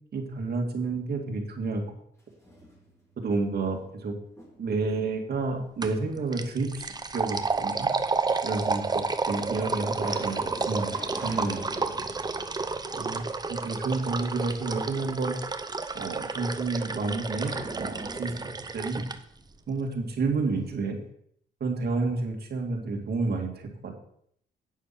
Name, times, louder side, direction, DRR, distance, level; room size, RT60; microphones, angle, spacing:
voice 1, 0.1-1.8 3.2-4.1 4.6-7.9 8.4-10.9 11.2-11.6 12.9-13.2 13.5-15.3 15.9-18.3 18.7-19.1 19.7-21.0 21.6-24.0, right 3 dB, 55° right, 1 dB, 2.3 m, -30 dB
sound 1, 2.2-3.2 3.6-4.9 6.1-6.9 7.8-7.9 8.8-8.9 9.5-13.6 13.9-14.0 17.3-20.1, left 1 dB, 15° left, 3.6 m, -46 dB
sound 2, 5.8-6.0 6.3-19.2, right 4 dB, 20° right, 0.7 m, -31 dB
9.2 x 6.0 x 6.0 m, 0.68 s
cardioid pair, 90°, 20 cm